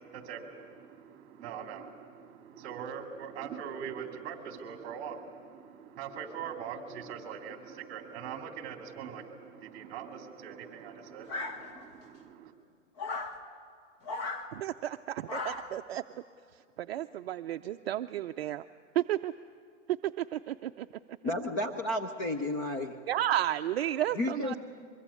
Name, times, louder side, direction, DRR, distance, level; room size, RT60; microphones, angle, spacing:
voice 1, 0.0-12.5, right 7 dB, 25° right, 6 dB, 2.3 m, -42 dB
sound 1, 11.3-12.0 13.0-13.4 14.0-14.5 15.3-15.8, left 3 dB, 30° left, 1.4 m, -37 dB
voice 2, 14.5-16.0 16.8-18.6 18.9-19.3 20.0-20.9 23.1-24.6, right 12 dB, 55° right, 8 dB, 0.5 m, -32 dB
voice 3, 21.2-23.0 24.1-24.6, left 1 dB, 15° left, 4 dB, 0.5 m, -32 dB
23.5 x 23.0 x 8.4 m, 2.2 s
hypercardioid pair, 160°, 38 cm